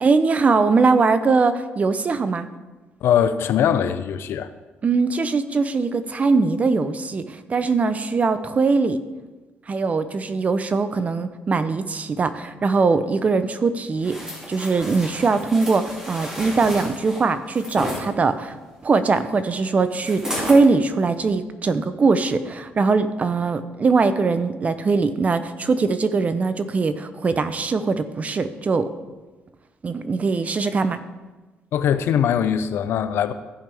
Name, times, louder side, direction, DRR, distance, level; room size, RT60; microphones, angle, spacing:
voice 1, 0.0-2.5 4.8-9.0 9.7-14.2 14.5-18.6 18.8-28.9 29.8-31.0, right 4 dB, 35° right, 11 dB, 0.6 m, -21 dB
voice 2, 3.0-4.5 31.7-33.3, left 9 dB, 75° left, 11 dB, 0.5 m, -21 dB
sound 1, 14.0-18.0 20.0-20.6 21.2-21.3, equal, 15° right, 2.5 m, -32 dB
15.0 x 5.3 x 3.4 m, 1.2 s
cardioid pair, 95°, 4 cm